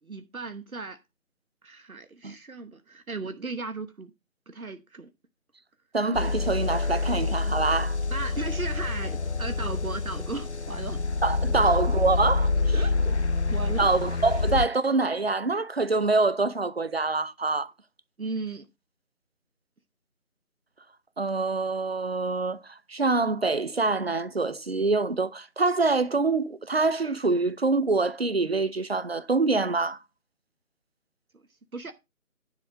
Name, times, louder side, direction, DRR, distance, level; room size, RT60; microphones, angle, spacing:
voice 1, 0.0-1.0 1.6-4.1 4.5-5.1 8.1-11.0 11.5-11.7 12.7-13.2 13.5-13.9 18.2-18.7 31.3-31.4 31.7-31.9, right 3 dB, 70° right, 1.1 m, -36 dB
voice 2, 5.9-8.0 11.2-12.7 13.8-17.7 21.2-30.0, right 3 dB, 45° right, 0.7 m, -25 dB
sound 1, 6.1-14.7, left 3 dB, 50° left, 0.6 m, -27 dB
10.0 x 5.8 x 4.8 m
figure-of-eight pair, 160°, 43 cm